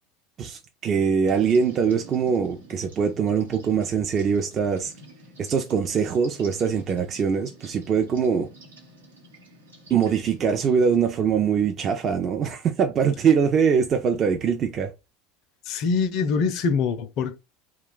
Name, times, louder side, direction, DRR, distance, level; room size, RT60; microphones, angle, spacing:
voice 1, 0.4-4.9 5.4-8.5 9.9-14.9, right 6 dB, 40° right, 0.5 m, -23 dB
sound 1, 1.3-11.1, right 2 dB, 85° right, 0.9 m, -49 dB
voice 2, 15.7-17.4, left 5 dB, 55° left, 0.5 m, -24 dB
2.3 x 2.2 x 3.7 m
hypercardioid pair, 80°, 0 cm